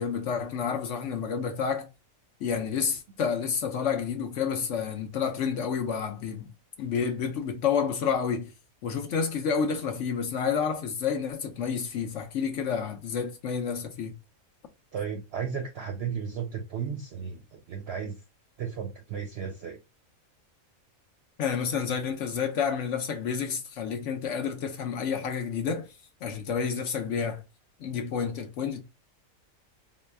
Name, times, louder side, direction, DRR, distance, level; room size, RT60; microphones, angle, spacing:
voice 1, 0.0-1.9 2.4-6.5 6.8-8.5 8.8-14.1 21.4-25.9 26.2-27.4 27.8-28.8, left 6 dB, 65° left, 0.9 m, -29 dB
voice 2, 14.9-18.2 18.6-19.8, right 7 dB, 60° right, 0.7 m, -34 dB
3.8 x 2.2 x 3.3 m
omnidirectional pair, 1.5 m